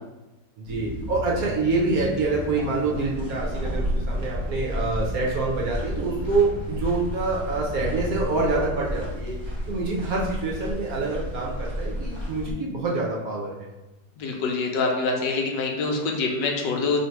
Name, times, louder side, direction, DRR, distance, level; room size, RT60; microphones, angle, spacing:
voice 1, 0.6-9.4 9.7-13.7, right 3 dB, 65° right, -3 dB, 1.0 m, -26 dB
sound 1, 0.7-12.5, equal, 20° right, 0.7 m, -31 dB
voice 2, 14.2-17.0, left 3 dB, 75° left, 1 dB, 1.2 m, -25 dB
3.2 x 2.7 x 4.4 m, 1.1 s
omnidirectional pair, 2.0 m